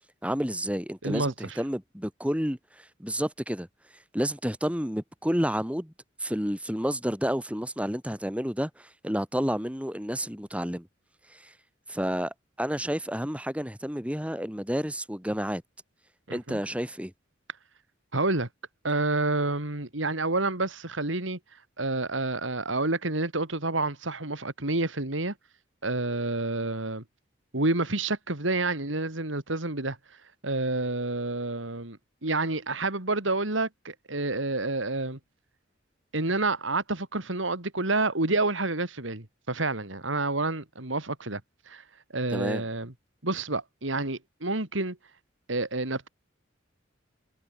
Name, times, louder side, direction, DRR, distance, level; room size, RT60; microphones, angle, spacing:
voice 1, 0.2-3.7 4.1-5.9 6.2-10.9 11.3-11.5 11.9-15.6 16.3-17.1 42.3-42.6, equal, 5° right, 5.1 m, -30 dB
voice 2, 1.0-1.6 16.3-16.6 18.1-18.5 18.8-21.4 21.8-25.3 25.8-27.0 27.5-30.0 30.4-35.2 36.1-41.4 41.7-41.8 42.1-42.9 43.2-45.0 45.5-46.1, right 2 dB, 80° right, 3.1 m, -29 dB
head